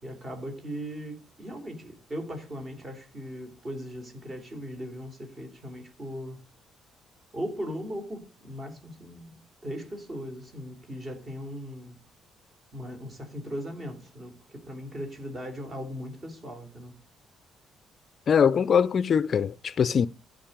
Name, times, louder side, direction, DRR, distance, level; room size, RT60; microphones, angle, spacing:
voice 1, 0.0-6.4 7.3-12.0 12.7-16.9, equal, 30° right, 3.3 m, -38 dB
voice 2, 18.3-20.1, left 7 dB, 45° left, 0.5 m, -22 dB
14.5 x 5.3 x 5.2 m
cardioid pair, 135°, 0 cm